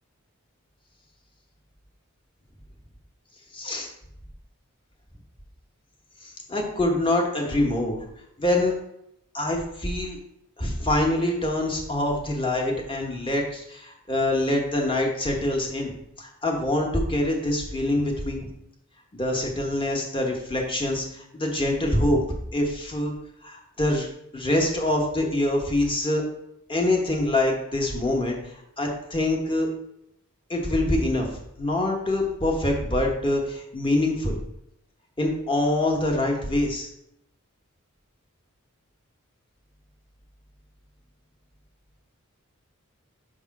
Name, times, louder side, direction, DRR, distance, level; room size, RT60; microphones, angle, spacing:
voice 1, 3.5-3.9 6.2-8.0 8.4-8.7 9.3-10.2 10.6-18.5 19.1-22.2 22.5-23.1 23.4-24.1 24.3-26.2 26.7-28.4 28.8-29.7 30.5-31.3 31.6-34.4 35.2-36.9, left 1 dB, 25° left, 0 dB, 1.3 m, -25 dB
6.1 x 3.6 x 5.8 m, 0.79 s
head